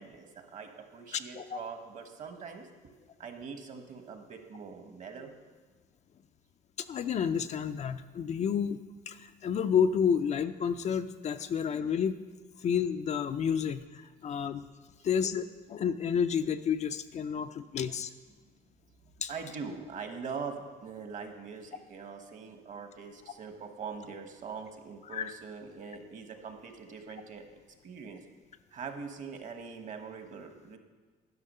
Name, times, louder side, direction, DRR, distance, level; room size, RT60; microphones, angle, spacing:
voice 1, 0.0-2.9 3.2-5.3 15.0-15.1 19.0-27.4 27.8-28.2 28.7-30.8, right 5 dB, 45° right, 6 dB, 1.2 m, -43 dB
voice 2, 6.9-12.2 12.6-14.7 15.0-18.1 19.2-19.3 25.1-25.3, left 7 dB, 45° left, 10 dB, 0.4 m, -30 dB
11.0 x 5.9 x 5.5 m, 1.4 s
cardioid pair, 110°, 17 cm